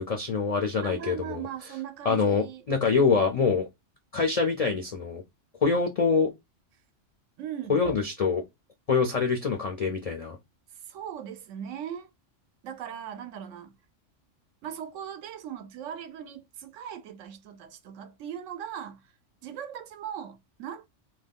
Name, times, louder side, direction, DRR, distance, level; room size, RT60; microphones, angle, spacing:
voice 1, 0.0-1.7 2.0-3.7 4.1-5.2 5.6-6.3 7.7-8.4 8.9-10.4, left 5 dB, 65° left, 0.3 m, -25 dB
voice 2, 0.8-2.6 7.4-7.8 10.9-12.1 12.6-13.7 14.6-19.0 19.4-20.9, right 9 dB, 85° right, 0.9 m, -39 dB
2.6 x 2.2 x 3.4 m
omnidirectional pair, 1.3 m